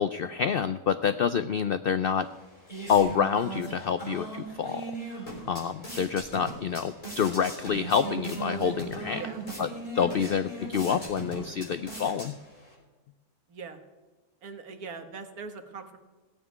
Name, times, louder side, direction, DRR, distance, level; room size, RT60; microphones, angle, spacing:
voice 1, 0.0-2.3 2.9-9.2 9.6-9.7 9.9-12.3, left 7 dB, 75° left, 12 dB, 0.5 m, -27 dB
sound 1, 2.2-12.7, right 2 dB, 25° left, 3.6 m, -39 dB
voice 2, 14.4-16.0, right 5 dB, 80° right, 8 dB, 1.8 m, -41 dB
16.5 x 7.2 x 9.7 m, 1.3 s
omnidirectional pair, 1.6 m